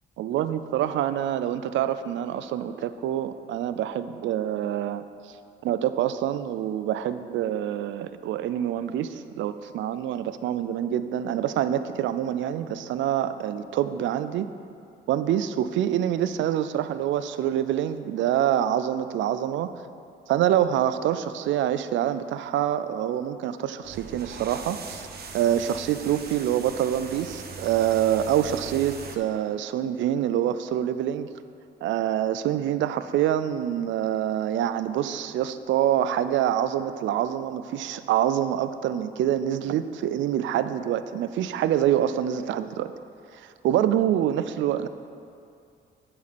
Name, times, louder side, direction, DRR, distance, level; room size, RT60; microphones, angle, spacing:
voice 1, 0.2-5.0 5.6-14.5 15.1-19.7 20.3-25.1 25.3-31.3 31.8-42.9 43.3-44.9, right 11 dB, 75° right, 12 dB, 0.4 m, -26 dB
sound 1, 23.8-29.2, right 4 dB, 50° right, 0.8 m, -40 dB
8.3 x 7.5 x 4.2 m, 2.4 s
cardioid pair, 90°, 20 cm